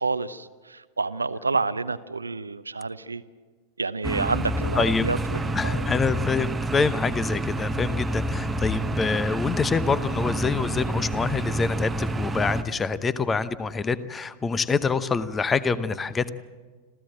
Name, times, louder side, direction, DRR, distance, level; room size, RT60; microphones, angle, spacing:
voice 1, 0.0-3.2 3.8-5.8, right 4 dB, 80° right, 13 dB, 0.7 m, -29 dB
sound 1, 4.0-12.6, right 1 dB, 10° right, 1.1 m, -28 dB
voice 2, 4.8-5.1 5.5-16.3, left 5 dB, 15° left, 16 dB, 0.9 m, -26 dB
26.5 x 15.5 x 7.8 m, 1.4 s
figure-of-eight pair, 90°, 0 cm